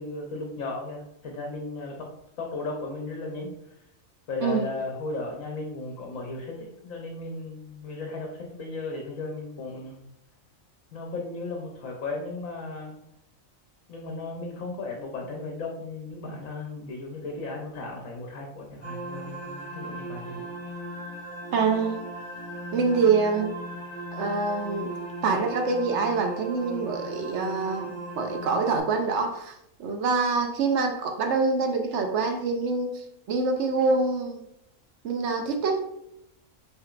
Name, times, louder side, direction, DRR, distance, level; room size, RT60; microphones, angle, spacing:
voice 1, 0.0-2.1 2.4-3.5 4.3-10.1 10.9-13.0 13.9-20.5, left 3 dB, 75° left, 0 dB, 1.1 m, -35 dB
sound 1, 18.8-28.8, right 2 dB, 10° left, 1.3 m, -37 dB
voice 2, 21.5-22.0 22.7-23.5 24.1-24.9 25.2-29.5 29.8-34.4 35.0-35.8, right 4 dB, 65° right, 4 dB, 0.9 m, -25 dB
5.9 x 3.3 x 2.4 m, 0.81 s
omnidirectional pair, 1.4 m